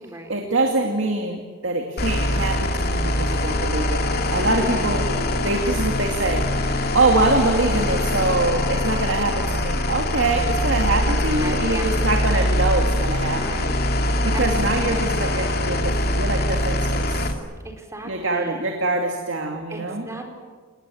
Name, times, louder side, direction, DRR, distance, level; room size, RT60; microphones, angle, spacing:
voice 1, 0.3-5.1 5.4-6.5 6.9-13.7 14.2-17.3 18.0-20.1, right 2 dB, 70° right, 3 dB, 2.6 m, -24 dB
sound 1, 2.0-17.3, left 1 dB, 50° left, 2.5 m, -23 dB
voice 2, 4.5-5.5 11.2-11.9 13.3-13.8 14.3-14.5 17.9-18.7 19.7-20.3, right 2 dB, 15° right, 3 dB, 4.4 m, -35 dB
29.5 x 20.0 x 8.8 m, 1.5 s
head